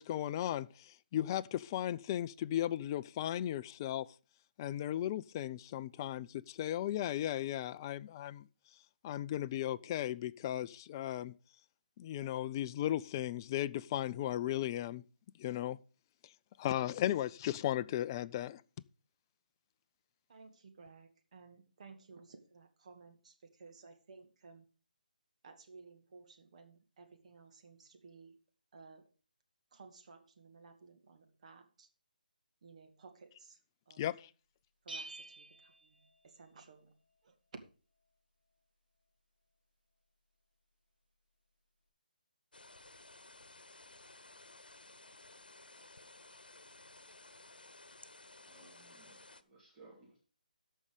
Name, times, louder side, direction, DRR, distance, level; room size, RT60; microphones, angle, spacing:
voice 1, 0.0-4.1 4.6-8.5 9.0-11.3 12.0-15.0 15.4-15.8 16.6-18.6 34.0-34.3, left 12 dB, 25° left, 0.4 m, -36 dB
voice 2, 20.3-24.7 25.4-28.4 28.7-29.1 29.7-31.9 32.6-33.6 33.9-34.1 34.8-37.4, right 4 dB, 50° right, 2.0 m, -57 dB
Bell, 34.9-36.7, right 2 dB, 80° right, 2.2 m, -49 dB
sound 1, 42.5-49.4, left 2 dB, 85° left, 1.0 m, -56 dB
voice 3, 48.5-50.2, right 3 dB, 20° right, 2.8 m, -60 dB
13.5 x 5.5 x 5.1 m
figure-of-eight pair, 150°, 5 cm